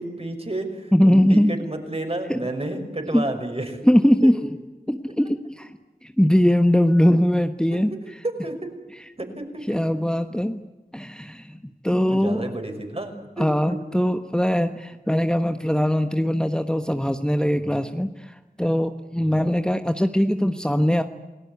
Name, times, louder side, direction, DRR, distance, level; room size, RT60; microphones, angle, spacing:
voice 1, 0.0-3.8 7.7-8.7 9.2-9.7 11.9-13.5 17.5-17.8 19.2-19.4, right 1 dB, 40° right, 5 dB, 5.8 m, -31 dB
voice 2, 0.9-1.5 2.3-2.4 3.1-3.3 3.8-4.4 4.9-5.7 6.2-7.9 9.7-10.6 10.9-11.6 11.8-12.4 13.4-18.1 18.6-21.0, equal, 5° left, 7 dB, 1.2 m, -20 dB
28.5 x 19.0 x 9.5 m, 1.2 s
wide cardioid pair, 55°, 15 cm